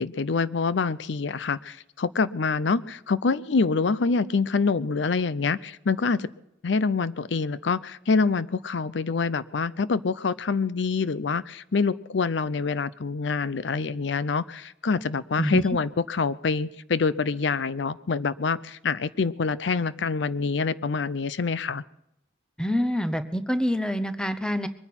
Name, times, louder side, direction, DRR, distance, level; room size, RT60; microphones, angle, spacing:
voice 1, 0.0-6.3 6.6-21.8, left 4 dB, 75° left, 17 dB, 0.6 m, -26 dB
voice 2, 22.6-24.7, equal, 5° left, 11 dB, 0.8 m, -26 dB
22.5 x 9.9 x 6.0 m, 0.80 s
head